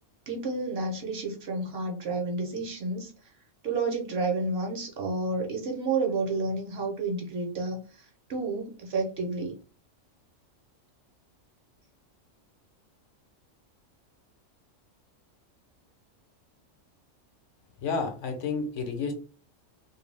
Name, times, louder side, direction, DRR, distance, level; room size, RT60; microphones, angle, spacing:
voice 1, 0.3-3.1 3.6-9.5, right 3 dB, 55° right, 1 dB, 0.9 m, -30 dB
voice 2, 17.8-19.1, left 4 dB, 70° left, 5 dB, 1.0 m, -30 dB
2.5 x 2.3 x 3.2 m, 0.36 s
omnidirectional pair, 1.3 m